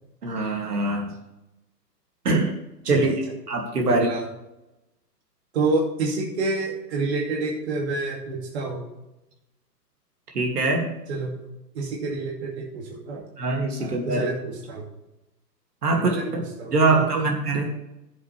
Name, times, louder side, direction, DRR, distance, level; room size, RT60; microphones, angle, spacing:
voice 1, 0.2-1.0 2.2-2.5 2.8-3.1 3.5-4.1 10.3-10.9 13.4-14.3 15.8-16.4 16.7-17.7, right 3 dB, 65° right, 1 dB, 2.8 m, -23 dB
voice 2, 3.8-4.3 5.5-8.8 11.1-11.3 11.7-13.2 13.8-14.8 15.9-17.3, right 3 dB, 40° right, -2 dB, 2.4 m, -28 dB
14.5 x 7.6 x 3.4 m, 0.93 s
hypercardioid pair, 150°, 50 cm